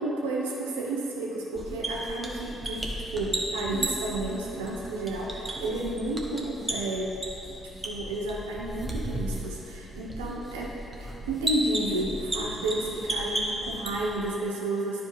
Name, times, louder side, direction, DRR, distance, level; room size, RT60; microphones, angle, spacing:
voice 1, 0.0-7.1 7.6-10.7 11.0-15.0, right 2 dB, 90° right, -3 dB, 0.9 m, -31 dB
sound 1, 1.5-14.3, right 1 dB, 25° right, 1.2 m, -35 dB
10.0 x 4.7 x 3.2 m, 2.9 s
hypercardioid pair, 45°, 0 cm